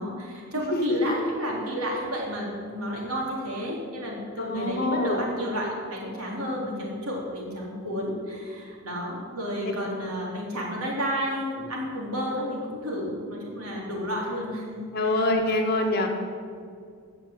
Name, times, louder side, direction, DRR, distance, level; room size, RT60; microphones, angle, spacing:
voice 1, 0.0-15.2, equal, 90° right, -2 dB, 3.7 m, -31 dB
voice 2, 0.7-1.1 4.4-5.2 14.9-16.1, left 2 dB, 45° left, 1 dB, 1.8 m, -25 dB
15.0 x 5.9 x 9.5 m, 2.2 s
head